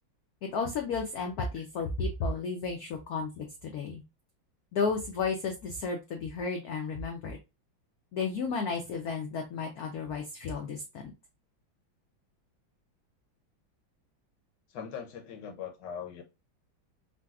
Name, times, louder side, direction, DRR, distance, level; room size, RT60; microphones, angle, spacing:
voice 1, 0.4-4.0 4.7-7.4 8.1-11.1, left 4 dB, 85° left, 0.8 m, -33 dB
voice 2, 14.7-16.2, left 7 dB, 70° left, 1.2 m, -40 dB
3.9 x 2.3 x 2.3 m
omnidirectional pair, 2.2 m